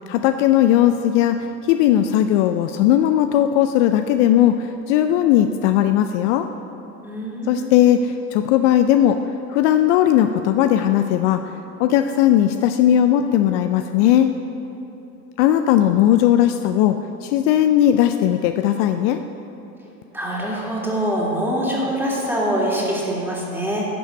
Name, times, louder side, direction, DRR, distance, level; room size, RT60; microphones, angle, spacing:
voice 1, 0.1-6.5 7.5-9.2 9.5-11.4 11.8-14.3 15.4-17.0 17.2-19.2, left 11 dB, 55° left, 8 dB, 0.5 m, -17 dB
voice 2, 7.0-7.7 20.1-23.9, equal, 5° right, -4 dB, 2.5 m, -24 dB
11.0 x 5.6 x 6.7 m, 2.9 s
hypercardioid pair, 95°, 43 cm